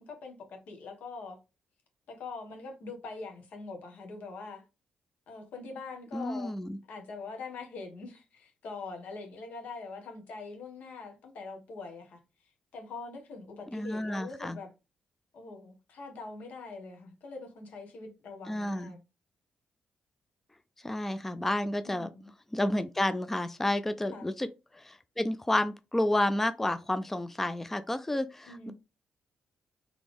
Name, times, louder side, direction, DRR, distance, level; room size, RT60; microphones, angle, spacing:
voice 1, 0.1-1.4 2.1-4.6 5.3-6.6 6.9-12.2 12.7-14.7 15.3-19.0 21.8-22.3 24.1-24.3 28.5-28.7, left 3 dB, 75° left, 1.5 m, -43 dB
voice 2, 6.1-6.8 13.7-14.6 18.5-19.0 20.8-22.1 22.5-24.5 24.7-28.7, left 1 dB, 10° left, 0.3 m, -30 dB
4.1 x 3.4 x 3.4 m
cardioid pair, 110°, 3 cm